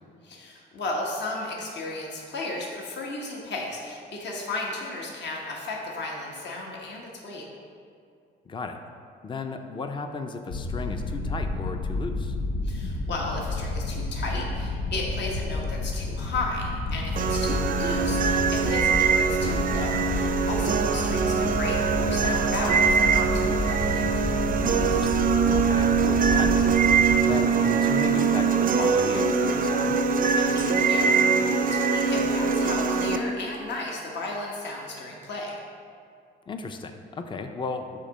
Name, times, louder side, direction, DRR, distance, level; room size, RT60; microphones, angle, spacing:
voice 1, 0.2-7.4 12.6-24.1 30.3-35.6, left 2 dB, 60° left, -2 dB, 1.1 m, -34 dB
voice 2, 8.5-8.8 9.2-12.4 24.8-26.7 27.2-30.0 36.5-38.0, left 4 dB, 25° left, 6 dB, 0.5 m, -34 dB
sound 1, 10.5-27.2, left 2 dB, 80° left, 0.7 m, -30 dB
sound 2, 17.2-33.2, right 5 dB, 45° right, 0.5 m, -23 dB
8.3 x 2.9 x 6.3 m, 2.4 s
cardioid pair, 90°, 20 cm